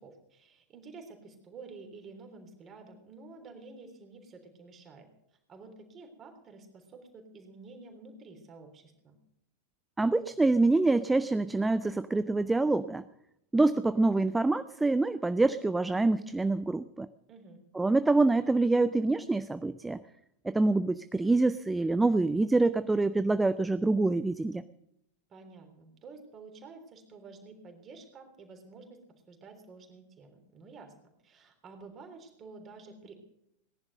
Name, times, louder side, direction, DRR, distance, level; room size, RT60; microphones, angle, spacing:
voice 1, 0.0-5.1 5.5-9.2 17.3-17.6 25.3-29.0 29.3-30.9 31.2-33.2, right 4 dB, 25° right, 4 dB, 3.5 m, -50 dB
voice 2, 10.0-13.0 13.5-17.1 17.7-20.0 20.4-24.6, right 2 dB, 10° right, 14 dB, 0.5 m, -26 dB
19.0 x 11.0 x 6.5 m, 0.77 s
figure-of-eight pair, 90°, 0 cm